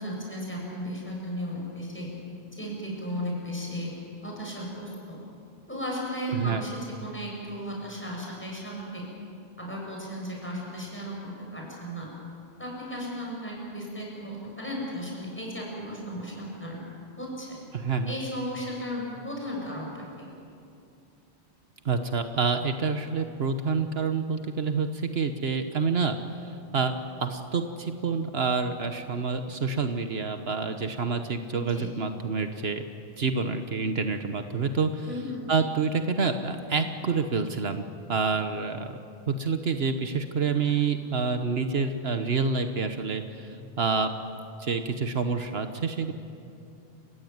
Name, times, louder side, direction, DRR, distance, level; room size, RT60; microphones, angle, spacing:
voice 1, 0.0-2.1 2.5-3.9 4.2-5.2 5.7-9.0 9.6-11.2 11.5-12.1 12.6-16.8 17.2-17.6 18.1-20.2 31.5-31.9 35.0-35.5, equal, 10° left, -3 dB, 7.4 m, -35 dB
voice 2, 17.7-18.1 21.8-26.2 26.7-26.9 27.2-32.8 33.2-35.2 35.5-38.9 39.3-44.1 44.6-46.1, right 5 dB, 70° right, 7 dB, 1.3 m, -28 dB
29.5 x 16.5 x 9.5 m, 2.5 s
omnidirectional pair, 1.1 m